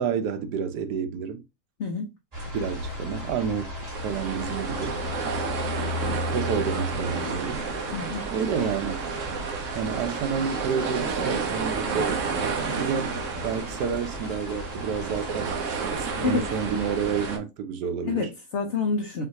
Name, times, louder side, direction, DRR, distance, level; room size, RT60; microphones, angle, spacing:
voice 1, 0.0-1.4 2.5-3.7 4.0-5.0 6.1-7.7 8.3-9.0 9.7-12.3 12.8-18.3, right 6 dB, 85° right, 1.3 m, -29 dB
voice 2, 1.8-2.1 7.9-8.3 16.2-16.5 18.0-19.3, left 4 dB, 55° left, 0.9 m, -28 dB
sound 1, 2.3-17.4, left 1 dB, 35° right, 2.3 m, -36 dB
sound 2, 3.9-17.4, right 5 dB, 55° right, 1.1 m, -31 dB
5.9 x 2.6 x 2.8 m
omnidirectional pair, 1.7 m